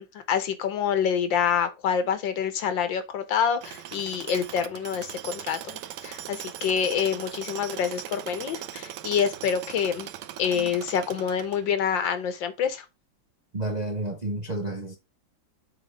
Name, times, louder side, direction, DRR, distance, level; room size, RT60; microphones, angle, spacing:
voice 1, 0.0-10.1 10.4-12.9, left 7 dB, 75° left, 1.8 m, -27 dB
Tools, 3.6-11.9, right 11 dB, 70° right, 1.3 m, -39 dB
voice 2, 13.5-15.0, right 2 dB, 35° right, 0.6 m, -31 dB
7.3 x 3.5 x 5.4 m
omnidirectional pair, 2.0 m